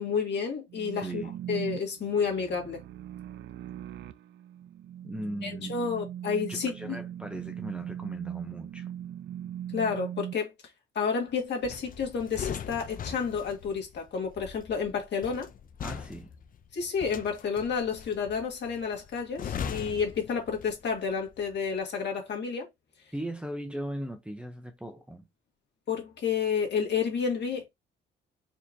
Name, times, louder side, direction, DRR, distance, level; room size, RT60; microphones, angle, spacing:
voice 1, 0.0-1.2 1.5-2.8 5.4-6.7 9.7-10.5 11.0-15.5 16.7-22.7 25.9-27.7, left 6 dB, 60° left, 1.9 m, -30 dB
sound 1, 0.7-10.3, right 10 dB, 65° right, 0.4 m, -39 dB
voice 2, 0.9-1.4 5.0-5.8 6.5-8.9 15.8-16.3 23.1-25.3, right 1 dB, 5° right, 0.7 m, -38 dB
sound 2, 11.6-21.0 21.3-21.6, left 7 dB, 45° left, 0.5 m, -40 dB
4.3 x 2.9 x 2.7 m
cardioid pair, 90°, 20 cm